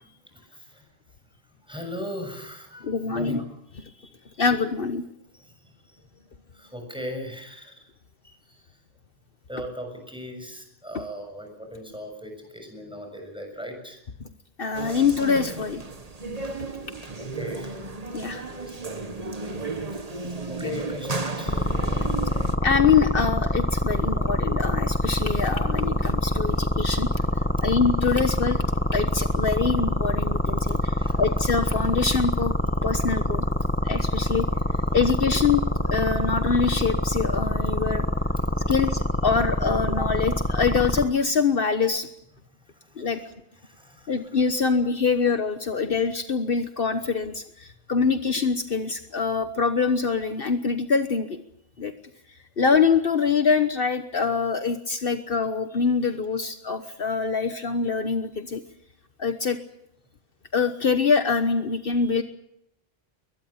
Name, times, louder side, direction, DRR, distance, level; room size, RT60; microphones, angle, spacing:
voice 1, 0.2-0.9 1.6-3.5 5.3-6.0 6.5-7.9 8.2-8.8 9.5-14.0 17.1-17.9 18.2-19.1 19.9-22.5 24.2-24.3 26.5-27.0 27.5-27.8 31.0-31.4 34.0-34.1 38.4-38.8 42.7-43.3 43.6-44.4 44.8-44.9, equal, 5° right, 4 dB, 6.9 m, -40 dB
voice 2, 2.8-3.4 4.0-4.1 4.4-5.0 14.6-15.8 18.1-18.4 22.6-27.1 27.6-28.6 28.9-32.5 32.8-33.4 33.8-34.5 34.9-38.1 38.7-42.1 43.0-43.2 44.1-51.4 51.8-51.9 52.6-58.6 59.2-59.6 60.5-62.2, left 5 dB, 60° left, 8 dB, 1.4 m, -24 dB
sound 1, 14.7-22.6, right 3 dB, 40° right, 1.5 m, -34 dB
sound 2, 21.5-41.0, left 1 dB, 10° left, 1.6 m, -25 dB
22.5 x 20.5 x 7.3 m, 0.76 s
omnidirectional pair, 1.1 m